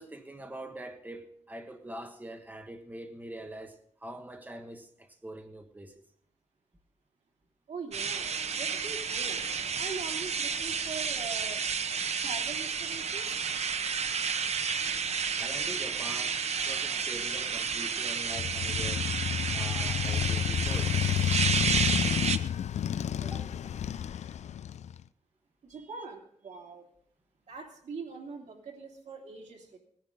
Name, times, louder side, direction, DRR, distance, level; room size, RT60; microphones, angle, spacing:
voice 1, 0.0-6.0 15.4-16.4 16.6-19.1 19.5-21.0 23.2-23.5 25.7-26.0, right 1 dB, 15° right, 1.4 m, -44 dB
voice 2, 7.7-9.4 9.8-11.6 12.2-13.4 25.6-26.8 27.5-29.8, right 4 dB, 85° right, 3.1 m, -42 dB
sound 1, 7.9-22.4, right 6 dB, 70° right, 0.9 m, -31 dB
Motorcycle, 18.3-25.0, left 9 dB, 75° left, 0.4 m, -30 dB
19.5 x 10.5 x 3.8 m
wide cardioid pair, 110°, 12 cm